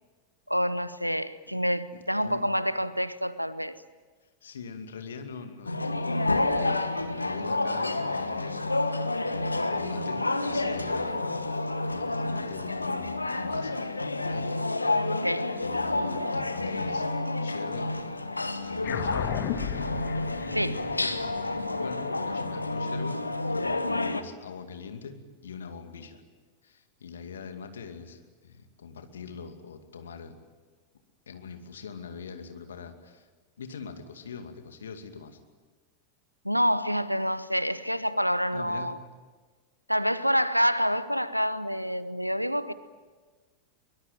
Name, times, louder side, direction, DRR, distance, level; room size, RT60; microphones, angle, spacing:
voice 1, 0.5-3.8 15.1-15.5 20.5-20.8 36.4-39.0 39.9-42.7, equal, 90° right, 0.9 m, -27 dB
voice 2, 1.9-2.5 2.7-2.8 4.4-8.6 8.9-11.6 11.8-13.8 14.2-14.5 15.6-17.1 17.4-18.0 18.4-19.4 21.8-26.2 26.6-30.4 31.3-33.3 33.6-35.4 38.5-38.9, left 6 dB, 65° left, 2.5 m, -43 dB
sound 1, 5.7-24.2, left 2 dB, 85° left, 1.3 m, -29 dB
sound 2, 18.8-23.6, left 9 dB, 45° left, 2.1 m, -36 dB
23.5 x 21.5 x 9.3 m
figure-of-eight pair, 90°, 0 cm